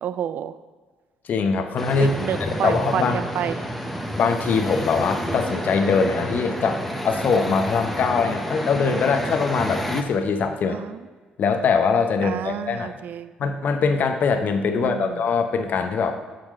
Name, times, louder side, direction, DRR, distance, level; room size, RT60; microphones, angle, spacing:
voice 1, 0.0-0.5 2.0-3.6 10.7-11.0 12.2-13.3 14.7-15.2, right 9 dB, 60° right, 14 dB, 0.4 m, -29 dB
voice 2, 1.2-3.2 4.2-10.8 11.4-13.0 13.4-16.1, left 5 dB, 55° left, 6 dB, 0.8 m, -22 dB
sound 1, 1.8-10.0, equal, ahead, 0.9 m, -29 dB
7.6 x 3.6 x 6.3 m, 1.4 s
hypercardioid pair, 50°, 3 cm